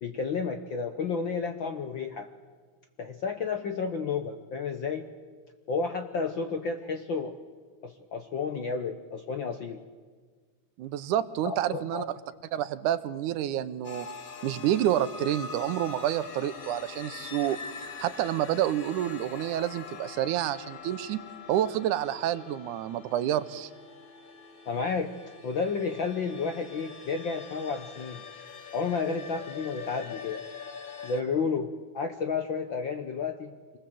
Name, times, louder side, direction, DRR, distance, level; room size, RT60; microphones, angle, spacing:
voice 1, 0.0-2.3 3.0-5.1 5.7-7.3 7.8-9.8 11.4-12.1 24.6-25.1 25.4-28.2 28.7-30.4 31.0-33.5, left 5 dB, 65° left, 7 dB, 1.2 m, -31 dB
voice 2, 10.8-12.2 12.5-14.1 14.4-17.6 18.0-21.2 21.5-23.7, right 12 dB, 85° right, 13 dB, 2.3 m, -28 dB
sound 1, 13.8-31.2, left 5 dB, 40° left, 1.3 m, -44 dB
26.0 x 20.0 x 7.7 m, 1.5 s
omnidirectional pair, 3.5 m